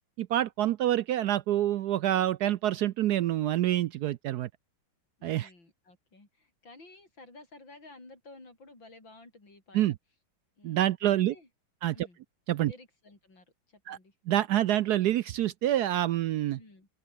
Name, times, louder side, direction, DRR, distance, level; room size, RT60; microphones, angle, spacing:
voice 1, 0.0-4.5 5.2-5.5 9.7-9.9 10.6-11.3 11.8-12.1 12.5-12.7 13.9-14.0 14.3-16.6, right 13 dB, 70° right, 1.0 m, -27 dB
voice 2, 5.2-9.8 10.6-11.5 11.9-12.2 12.6-14.2 16.5-16.9, left 2 dB, 80° left, 7.5 m, -53 dB
omnidirectional pair, 2.0 m